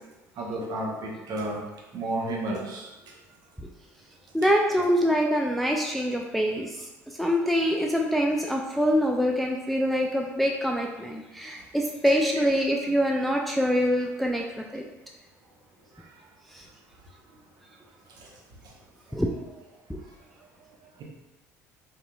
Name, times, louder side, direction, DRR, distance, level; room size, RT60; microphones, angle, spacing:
voice 1, 0.4-1.6 1.9-2.9, right 1 dB, 50° right, -2 dB, 0.8 m, -31 dB
voice 2, 4.3-6.7 7.2-14.4 14.7-14.8 16.5-16.6 19.1-19.3, equal, ahead, 0 dB, 0.3 m, -24 dB
3.8 x 2.7 x 2.3 m, 1.0 s
figure-of-eight pair, 60°, 8 cm